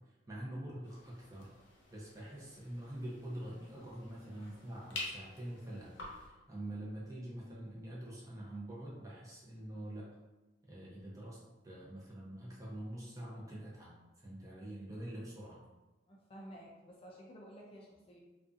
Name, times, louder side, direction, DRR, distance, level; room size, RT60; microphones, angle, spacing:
voice 1, 0.0-1.5 1.9-10.1 10.6-11.4 11.6-15.6, right 1 dB, 20° right, -6 dB, 0.6 m, -45 dB
sound 1, 0.8-6.3, left 2 dB, 85° left, 0.6 m, -49 dB
voice 2, 16.1-18.2, equal, 30° left, -3 dB, 0.3 m, -53 dB
2.6 x 2.3 x 2.4 m, 1.1 s
head